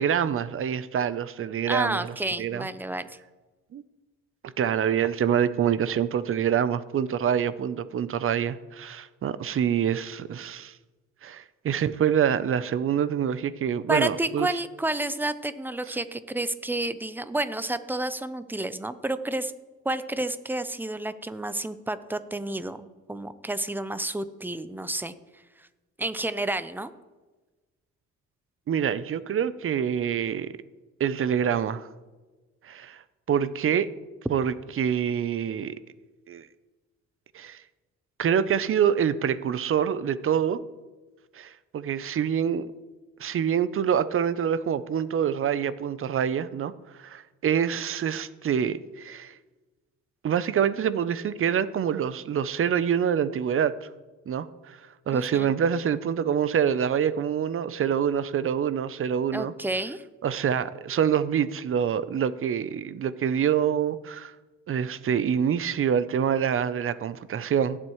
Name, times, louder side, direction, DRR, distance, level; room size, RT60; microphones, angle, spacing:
voice 1, 0.0-2.7 3.7-3.8 4.4-10.7 11.2-14.5 28.7-30.5 31.0-31.9 32.6-33.0 33.3-33.9 34.3-35.7 36.3-36.5 37.3-37.6 38.2-40.6 41.3-42.7 43.2-46.7 47.0-49.3 50.2-53.9 54.3-54.8 55.1-59.5 60.2-64.3 64.7-67.8, right 8 dB, 45° right, 16 dB, 0.6 m, -26 dB
voice 2, 1.7-3.2 13.9-19.5 19.8-25.1 25.6-25.7 26.0-26.9 55.1-55.5 59.3-60.0, right 2 dB, 5° right, 13 dB, 0.6 m, -30 dB
17.5 x 7.7 x 3.1 m, 1.2 s
cardioid pair, 90°, 30 cm